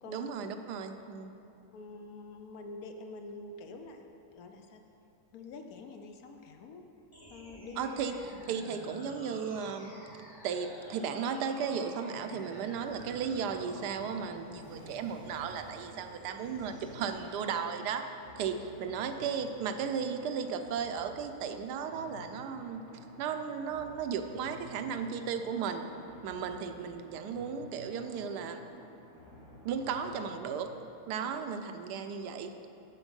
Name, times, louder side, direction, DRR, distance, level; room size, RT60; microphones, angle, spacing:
voice 1, 0.1-1.3 7.8-8.1 8.5-9.9 10.4-18.1 18.4-22.8 23.2-25.9 26.2-28.6 29.6-30.7 31.1-32.5, right 6 dB, 85° right, 7 dB, 1.2 m, -35 dB
voice 2, 1.7-4.8 5.3-6.8 7.3-8.0 18.5-18.7 31.2-31.4, left 3 dB, 70° left, 5 dB, 1.0 m, -46 dB
sound 1, 7.1-17.1, equal, 15° left, 0.9 m, -50 dB
sound 2, 12.3-30.9, left 1 dB, 30° right, 1.7 m, -53 dB
7.1 x 7.1 x 5.3 m, 2.8 s
omnidirectional pair, 1.7 m